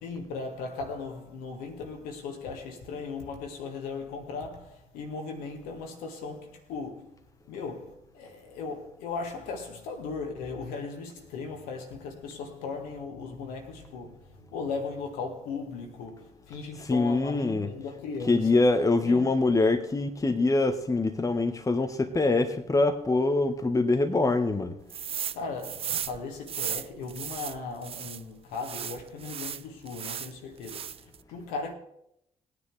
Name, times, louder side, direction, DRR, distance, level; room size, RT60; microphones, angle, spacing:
voice 1, 0.0-7.2 7.5-18.6 19.0-19.3 25.3-31.7, left 4 dB, 65° left, 1.7 m, -37 dB
voice 2, 16.8-17.7 18.3-24.7, left 3 dB, 20° left, 1.2 m, -24 dB
sound 1, 24.9-25.4 25.6-28.2 28.6-30.3 30.6-31.2, right 8 dB, 35° right, 0.5 m, -35 dB
20.0 x 9.7 x 3.4 m
figure-of-eight pair, 40°, 16 cm